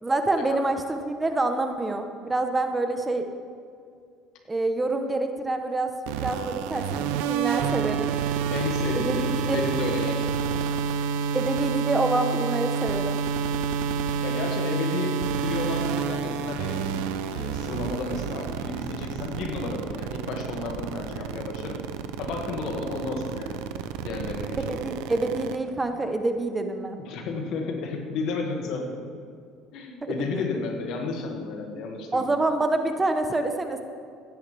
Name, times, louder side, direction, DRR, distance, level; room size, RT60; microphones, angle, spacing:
voice 1, 0.0-3.3 4.5-5.9 6.2-8.1 8.9-9.6 11.3-13.2 24.7-27.0 30.0-30.5 32.1-33.8, right 2 dB, 15° right, 6 dB, 0.9 m, -27 dB
sound 1, 6.1-25.6, right 6 dB, 85° right, 0.6 m, -29 dB
voice 2, 8.5-10.5 14.2-16.9 17.3-21.8 22.2-23.6 24.0-24.8 27.1-29.0 29.7-32.3, left 3 dB, 65° left, 2 dB, 2.0 m, -32 dB
15.0 x 11.0 x 3.4 m, 2.3 s
supercardioid pair, 100°, 0 cm